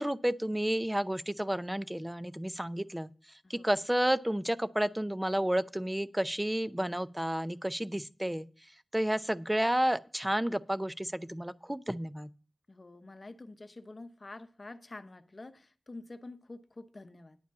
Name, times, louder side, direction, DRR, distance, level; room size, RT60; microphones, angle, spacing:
voice 1, 0.0-3.1 3.5-8.5 8.9-12.3, right 1 dB, 10° right, 15 dB, 0.5 m, -31 dB
voice 2, 12.7-17.4, left 2 dB, 45° left, 10 dB, 0.9 m, -48 dB
10.5 x 5.0 x 8.2 m, 0.39 s
wide cardioid pair, 70°, 0 cm